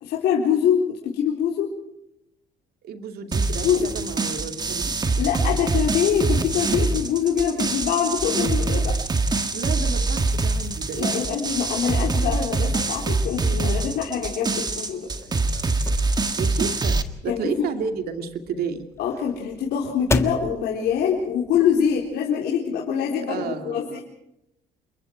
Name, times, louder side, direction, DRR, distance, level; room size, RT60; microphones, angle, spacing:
voice 1, 0.0-1.7 3.6-3.9 5.2-8.9 10.9-15.1 17.3-17.7 19.0-24.0, left 8 dB, 75° left, -3 dB, 4.0 m, -24 dB
voice 2, 2.8-5.2 9.5-11.2 16.4-18.9 23.3-24.0, right 6 dB, 65° right, 6 dB, 2.7 m, -32 dB
sound 1, 3.3-17.0, right 3 dB, 25° right, 1.7 m, -24 dB
sound 2, 15.1-22.1, left 2 dB, 15° left, 1.5 m, -34 dB
28.5 x 22.5 x 4.7 m, 0.84 s
cardioid pair, 110°, 17 cm